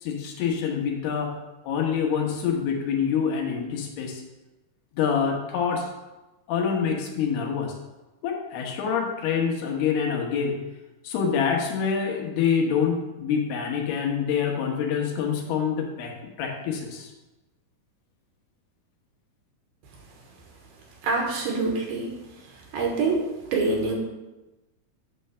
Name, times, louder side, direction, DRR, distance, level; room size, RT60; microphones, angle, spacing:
voice 1, 0.0-1.3 1.6-4.2 4.9-5.9 6.5-7.7 8.2-10.6 11.0-17.1, left 7 dB, 85° left, 1 dB, 3.1 m, -26 dB
voice 2, 21.0-22.1 22.4-23.2 23.5-23.9, right 3 dB, 75° right, 0 dB, 3.0 m, -25 dB
9.3 x 3.3 x 6.6 m, 1.1 s
omnidirectional pair, 4.5 m